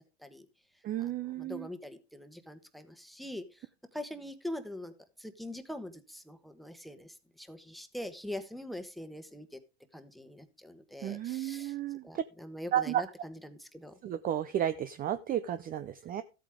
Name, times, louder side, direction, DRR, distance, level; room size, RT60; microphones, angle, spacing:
voice 1, 0.8-1.7 11.0-12.2 12.7-13.0 14.0-16.2, right 11 dB, 25° right, 13 dB, 0.5 m, -32 dB
voice 2, 1.4-3.7 3.9-4.9 5.2-9.6 9.9-11.7 12.0-14.0, left 1 dB, ahead, 10 dB, 1.3 m, -43 dB
13.5 x 8.3 x 3.7 m, 0.31 s
hypercardioid pair, 110°, 34 cm